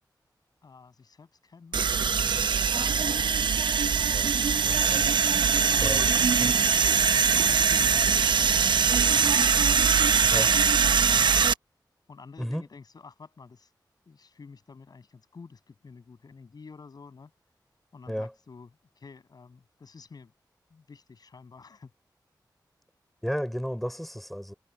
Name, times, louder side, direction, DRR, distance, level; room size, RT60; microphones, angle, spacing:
voice 1, 0.6-3.6 5.3-5.6 6.4-6.7 7.1-8.8 9.6-11.5 12.1-13.7 14.1-17.3 17.9-18.7 19.0-20.3 20.7-21.9, left 4 dB, 60° left, 7.6 m, -49 dB
sound 1, 1.7-11.5, right 6 dB, 85° right, 0.8 m, -22 dB
voice 2, 4.1-5.1 5.8-6.1 6.4-6.5 10.3-10.6 12.4-12.6 18.1-18.3 23.2-24.5, equal, ahead, 4.6 m, -33 dB
wide cardioid pair, 105°, 8 cm